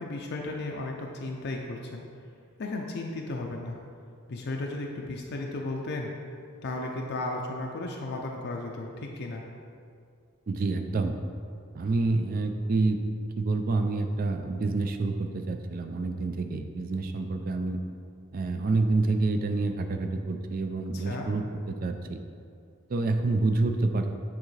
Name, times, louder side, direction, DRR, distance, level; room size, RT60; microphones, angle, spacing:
voice 1, 0.0-2.0 2.6-3.8 4.3-6.1 6.6-9.4 20.9-21.3, left 2 dB, 50° left, 0 dB, 0.5 m, -34 dB
voice 2, 10.5-11.2 11.7-13.0 13.4-17.8 18.3-22.2 22.9-24.1, right 3 dB, 40° right, 6 dB, 0.4 m, -28 dB
8.7 x 3.6 x 3.2 m, 2.3 s
head